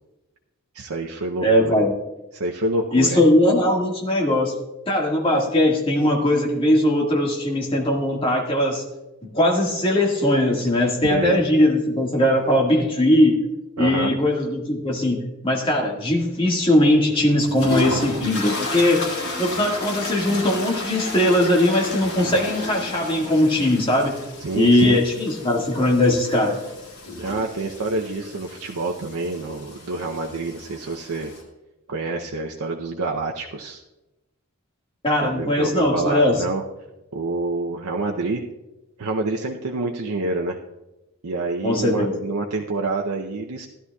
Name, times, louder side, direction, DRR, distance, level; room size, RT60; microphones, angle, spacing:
voice 1, 0.7-1.9 2.3-3.2 11.1-11.4 13.8-14.1 24.4-25.0 27.2-31.3 31.9-33.8 35.2-36.6 37.1-38.4 39.0-40.6 41.2-43.7, right 3 dB, 85° right, 1 dB, 0.7 m, -27 dB
voice 2, 1.4-1.9 2.9-4.5 4.9-8.8 9.3-13.4 13.8-19.1 19.4-24.2 24.5-26.5 35.0-36.3 41.6-42.1, left 1 dB, 25° left, -1 dB, 1.8 m, -20 dB
sound 1, 17.4-31.4, left 2 dB, 70° left, 3.4 m, -33 dB
16.0 x 11.0 x 2.3 m, 1.0 s
head